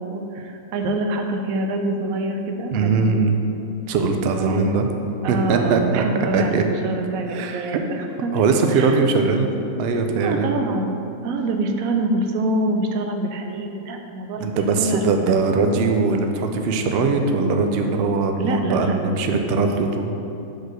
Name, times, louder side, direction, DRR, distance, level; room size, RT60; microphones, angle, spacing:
voice 1, 0.0-3.2 4.4-8.3 8.7-9.0 10.2-11.0 11.2-15.4 18.4-19.1, right 2 dB, 70° right, 4 dB, 0.9 m, -26 dB
voice 2, 2.7-3.3 3.9-4.9 5.3-6.0 6.3-6.6 7.3-7.7 8.3-9.5 9.8-10.5 14.4-20.1, right 4 dB, 90° right, 5 dB, 0.5 m, -20 dB
5.2 x 4.1 x 6.0 m, 2.8 s
omnidirectional pair, 1.7 m